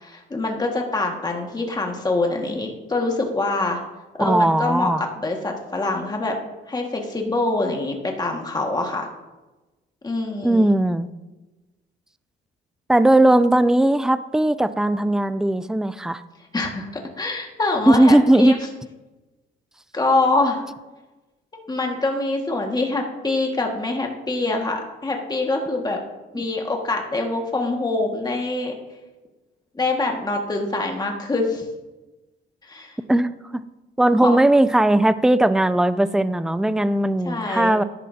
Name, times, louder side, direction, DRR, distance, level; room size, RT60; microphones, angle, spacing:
voice 1, 0.0-3.8 4.2-4.9 5.2-6.3 6.7-9.1 10.0-10.6 16.5-18.6 19.9-20.6 21.7-26.0 26.3-28.8 29.8-31.6 32.6-33.0 34.2-34.4 37.3-37.8, left 2 dB, 20° left, 1 dB, 1.8 m, -24 dB
voice 2, 4.2-5.0 10.4-11.1 12.9-16.2 17.9-18.5 33.1-33.6 34.0-37.8, right 1 dB, 5° right, 13 dB, 0.5 m, -18 dB
13.5 x 11.0 x 2.8 m, 1.1 s
cardioid pair, 90°, 20 cm